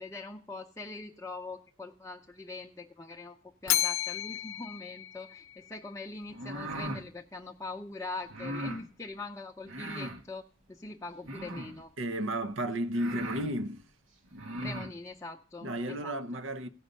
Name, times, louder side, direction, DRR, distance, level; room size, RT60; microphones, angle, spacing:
voice 1, 0.0-3.4 3.6-11.9 14.6-16.1, left 3 dB, 15° left, 0.6 m, -42 dB
Bell, 3.7-5.9, left 13 dB, 90° left, 0.5 m, -32 dB
sound 1, 6.3-7.0 8.3-8.8 9.6-10.2 11.2-11.8 12.5-12.6 12.9-13.5 14.3-14.9, right 1 dB, 85° right, 1.3 m, -38 dB
voice 2, 12.0-13.9 15.6-16.7, right 1 dB, 70° right, 0.7 m, -33 dB
16.0 x 5.4 x 6.5 m
head